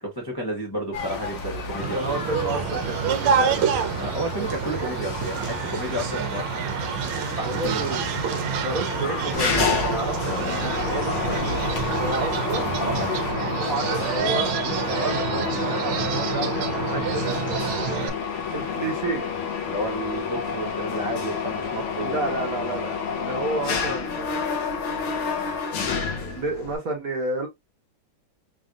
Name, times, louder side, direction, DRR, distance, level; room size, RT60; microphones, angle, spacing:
voice 1, 0.0-2.0 4.0-7.9 12.8-13.2 19.7-22.4, right 1 dB, 20° left, 0.7 m, -32 dB
sound 1, 0.9-13.3, left 2 dB, 60° left, 1.7 m, -35 dB
voice 2, 1.8-3.7 4.7-4.9 7.4-8.0 8.6-11.6 11.9-12.7 13.6-14.5 14.8-17.6 18.5-19.2 22.0-24.4 26.2-27.5, right 2 dB, 50° right, 1.3 m, -31 dB
sound 2, 1.8-18.1, right 6 dB, 75° right, 1.5 m, -27 dB
Mechanisms, 9.3-26.8, left 5 dB, 80° left, 1.9 m, -29 dB
5.2 x 2.6 x 2.4 m
omnidirectional pair, 2.4 m